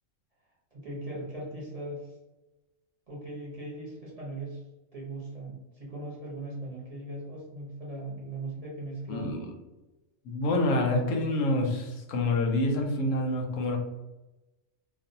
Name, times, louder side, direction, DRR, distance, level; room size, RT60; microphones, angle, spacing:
voice 1, 0.7-2.1 3.1-4.6 4.9-9.4, right 1 dB, 40° right, -5 dB, 0.6 m, -39 dB
voice 2, 9.1-9.5 10.2-13.8, left 2 dB, 85° left, 2 dB, 1.0 m, -27 dB
2.5 x 2.1 x 2.6 m, 1.0 s
omnidirectional pair, 1.3 m